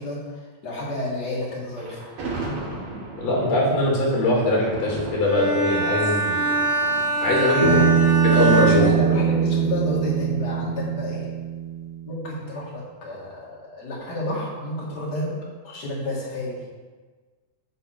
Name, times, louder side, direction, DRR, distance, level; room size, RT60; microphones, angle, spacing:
voice 1, 0.0-2.1 7.6-7.9 8.7-11.3 12.1-15.3 15.6-16.7, left 1 dB, 35° left, -5 dB, 2.1 m, -30 dB
Thunder, 1.7-8.9, right 2 dB, 80° right, 3.7 m, -37 dB
voice 2, 3.2-6.5 7.2-7.7 8.2-8.8, left 1 dB, 60° left, -3 dB, 3.3 m, -21 dB
Bowed string instrument, 5.2-9.7, right 3 dB, 55° right, 0.6 m, -24 dB
Bass guitar, 7.6-11.9, right 7 dB, 25° right, 1.6 m, -22 dB
8.5 x 4.2 x 6.4 m, 1.4 s
omnidirectional pair, 3.6 m